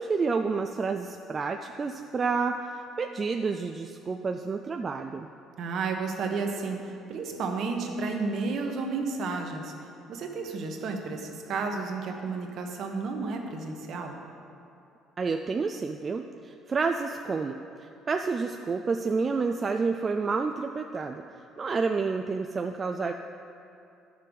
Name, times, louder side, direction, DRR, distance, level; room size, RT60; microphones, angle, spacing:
voice 1, 0.0-5.3 15.2-21.2 21.6-23.1, right 4 dB, 25° right, 5 dB, 0.3 m, -29 dB
voice 2, 5.6-9.7 10.1-14.2, right 4 dB, 55° right, 3 dB, 1.2 m, -32 dB
11.0 x 6.7 x 5.3 m, 2.7 s
cardioid pair, 145°, 0 cm